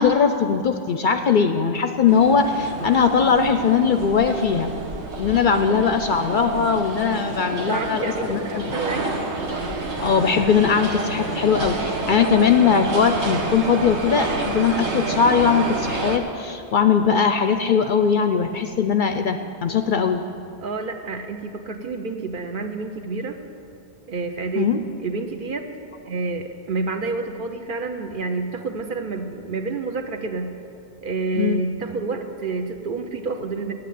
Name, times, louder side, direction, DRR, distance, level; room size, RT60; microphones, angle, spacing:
voice 1, 0.0-4.7 5.2-8.7 9.0-9.1 10.0-20.2 24.6-24.8 31.4-31.6, left 6 dB, 60° left, 8 dB, 0.6 m, -20 dB
sound 1, 2.1-16.2, right 2 dB, 75° right, 1.4 m, -29 dB
voice 2, 7.5-9.2 20.6-23.4 24.1-25.7 26.1-30.5 31.0-33.7, right 3 dB, 55° right, 6 dB, 0.9 m, -29 dB
8.5 x 8.5 x 9.2 m, 2.4 s
omnidirectional pair, 1.1 m